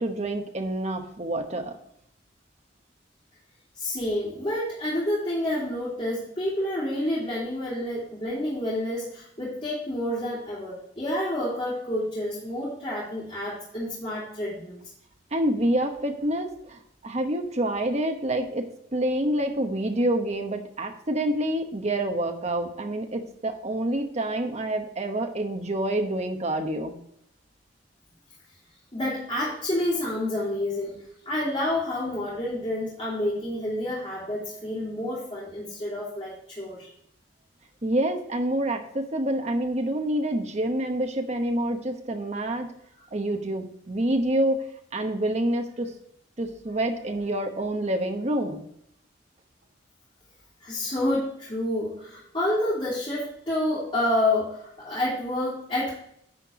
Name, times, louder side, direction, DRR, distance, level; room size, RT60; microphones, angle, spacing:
voice 1, 0.0-1.8 15.3-27.0 37.8-42.7 43.1-44.6 44.9-45.9 46.4-48.6, right 1 dB, 35° right, 5 dB, 1.0 m, -27 dB
voice 2, 3.8-14.8 28.9-36.9 50.6-55.9, left 1 dB, 30° left, -10 dB, 2.8 m, -29 dB
9.9 x 4.5 x 5.0 m, 0.71 s
head